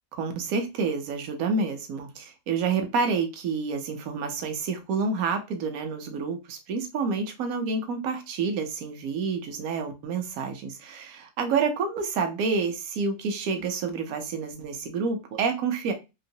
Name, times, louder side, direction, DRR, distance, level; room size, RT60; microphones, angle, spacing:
voice 1, 0.2-15.9, right 4 dB, 70° right, 1.1 m, -28 dB
3.0 x 2.9 x 2.7 m
omnidirectional pair, 1.6 m